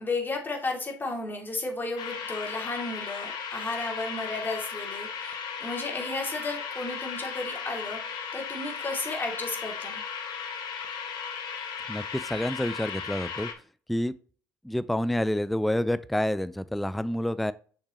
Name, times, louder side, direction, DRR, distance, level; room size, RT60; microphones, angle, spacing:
voice 1, 0.0-10.0, left 2 dB, 25° left, 2.6 m, -33 dB
sound 1, 2.0-13.5, left 6 dB, 55° left, 1.2 m, -36 dB
voice 2, 11.9-13.5 13.9-14.1 14.6-17.5, left 1 dB, ahead, 0.4 m, -28 dB
6.6 x 5.6 x 3.0 m
hypercardioid pair, 55°, 9 cm